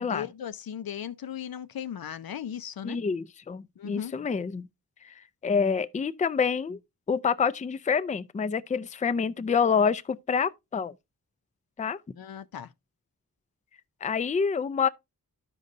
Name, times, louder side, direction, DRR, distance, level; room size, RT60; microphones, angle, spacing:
voice 1, 0.0-3.0 3.8-4.1 12.2-12.7, left 9 dB, 75° left, 0.5 m, -37 dB
voice 2, 2.8-4.7 5.0-5.1 5.4-6.8 7.1-10.9 11.8-12.0 14.0-14.9, left 6 dB, 20° left, 0.4 m, -27 dB
12.5 x 5.3 x 2.5 m
wide cardioid pair, 90°, 36 cm